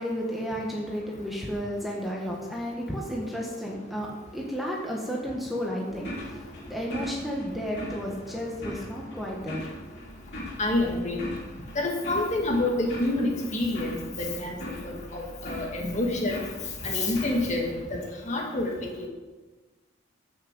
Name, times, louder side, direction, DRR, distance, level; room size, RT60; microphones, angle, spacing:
voice 1, 0.0-10.0, equal, ahead, -2 dB, 1.3 m, -33 dB
sound 1, 5.9-17.8, left 1 dB, 55° left, 3.5 m, -41 dB
voice 2, 10.6-11.3 11.8-16.4 16.8-19.1, left 2 dB, 35° left, 1 dB, 2.0 m, -28 dB
14.0 x 6.2 x 5.3 m, 1.2 s
head